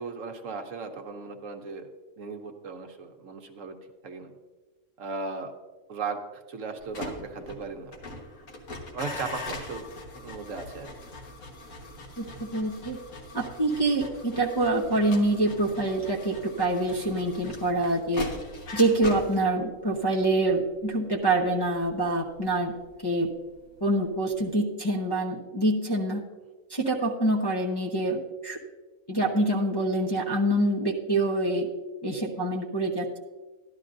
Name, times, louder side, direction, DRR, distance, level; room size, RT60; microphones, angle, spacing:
voice 1, 0.0-1.9 2.2-3.8 4.0-4.3 5.0-5.5 5.9-7.9 8.9-9.9 10.1-10.9 26.1-26.2, right 4 dB, 70° right, 5 dB, 1.2 m, -37 dB
sound 1, 6.8-23.8 24.1-24.5, left 1 dB, 90° left, 1.8 m, -42 dB
voice 2, 12.2-13.0 13.3-18.2 18.7-22.7 23.0-23.3 23.8-26.2 26.7-28.6 29.1-31.7 32.0-33.2, right 2 dB, 20° left, -3 dB, 0.7 m, -26 dB
13.5 x 11.5 x 2.6 m, 1.3 s
omnidirectional pair, 1.4 m